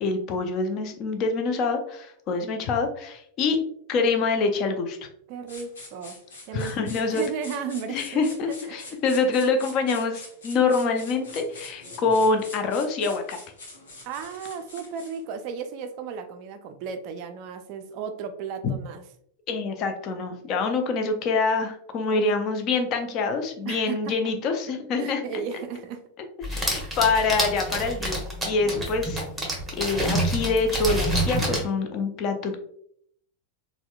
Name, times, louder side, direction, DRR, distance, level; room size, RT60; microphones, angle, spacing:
voice 1, 0.0-3.6 3.9-5.0 6.5-7.2 7.9-13.4 19.5-25.2 26.5-29.2 29.8-32.6, left 4 dB, 35° left, 5 dB, 0.5 m, -25 dB
voice 2, 5.3-6.2 6.5-6.8 7.1-8.3 8.6-9.0 14.0-19.0 21.0-21.1 22.1-22.2 23.6-24.1 25.0-26.0 26.6-27.0 28.6-28.9, right 6 dB, 45° right, 7 dB, 0.3 m, -35 dB
sound 1, 5.5-15.2, left 2 dB, 60° left, 0.9 m, -44 dB
sound 2, 26.4-31.7, right 1 dB, 10° right, 0.9 m, -27 dB
4.1 x 2.1 x 2.2 m, 0.66 s
figure-of-eight pair, 90°, 0 cm